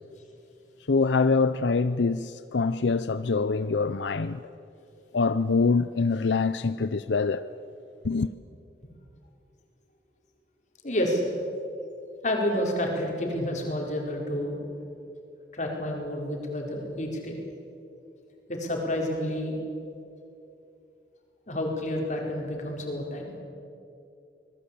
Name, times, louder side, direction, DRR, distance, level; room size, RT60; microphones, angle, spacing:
voice 1, 0.9-4.4 5.1-7.4 8.0-8.3, left 4 dB, 90° left, 0.6 m, -24 dB
voice 2, 10.8-11.2 12.2-14.6 15.5-17.4 18.5-19.6 21.5-23.3, left 1 dB, 45° left, 4.7 m, -29 dB
25.0 x 20.0 x 8.5 m
head